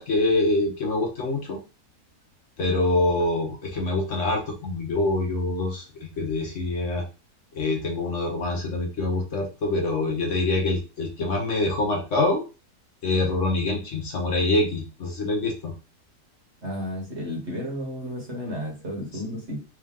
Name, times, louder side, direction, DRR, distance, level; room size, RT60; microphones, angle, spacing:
voice 1, 0.0-1.6 2.6-7.0 7.5-12.4 13.0-15.7, left 2 dB, 55° left, 0 dB, 1.1 m, -25 dB
voice 2, 16.6-19.6, equal, 45° right, -1 dB, 1.5 m, -32 dB
3.7 x 2.6 x 3.6 m, 0.31 s
omnidirectional pair, 1.6 m